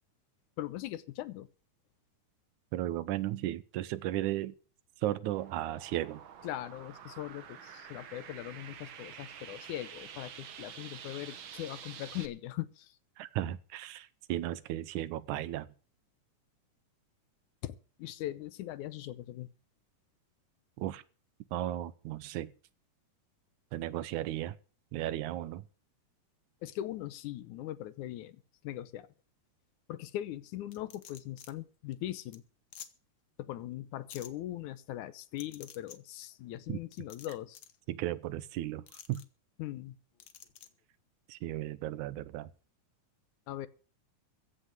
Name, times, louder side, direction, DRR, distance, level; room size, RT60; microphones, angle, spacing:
voice 1, 0.6-1.5 6.4-13.0 17.6-19.5 26.6-29.1 29.9-32.4 33.4-37.6 39.6-40.0 43.5-43.7, left 13 dB, 75° left, 2.2 m, -40 dB
voice 2, 2.7-4.6 5.0-6.2 13.2-15.7 20.8-21.0 21.5-22.5 23.7-24.6 24.9-25.7 36.7-36.8 37.9-39.2 41.3-42.5, right 14 dB, 75° right, 2.2 m, -35 dB
sound 1, 5.3-12.3, right 8 dB, 55° right, 1.4 m, -48 dB
sound 2, 30.7-31.5 31.9-32.0 32.3-32.4 32.7-32.9 34.1-34.3 35.4-36.0 36.9-37.8 38.9-39.2 40.2-40.7, left 9 dB, 60° left, 1.3 m, -50 dB
15.5 x 6.4 x 9.0 m
omnidirectional pair, 3.6 m